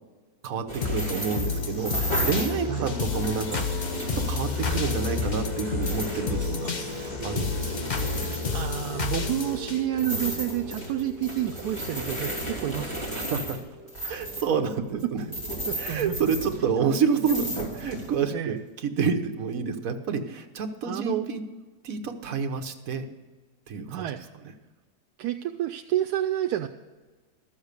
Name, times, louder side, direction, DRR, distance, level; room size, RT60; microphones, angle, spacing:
voice 1, 0.4-8.4 13.0-13.6 14.1-15.2 15.8-21.4 21.8-23.1 23.7-24.0, right 5 dB, 60° right, 6 dB, 1.4 m, -29 dB
sound 1, 0.7-2.6 3.0-9.0 9.9-16.9 17.1-18.2, equal, 15° left, 3.4 m, -34 dB
sound 2, 0.8-10.9 11.3-11.4, left 4 dB, 40° left, 0.7 m, -30 dB
sound 3, 4.2-18.1, left 1 dB, 20° right, 0.9 m, -45 dB
voice 2, 8.5-13.0 14.0-14.2 15.7-16.2 16.6-16.7 18.3-18.6 20.8-21.3 23.9-24.2 25.2-26.7, right 12 dB, 80° right, 5 dB, 1.1 m, -29 dB
13.5 x 7.2 x 6.7 m, 1.3 s
omnidirectional pair, 1.7 m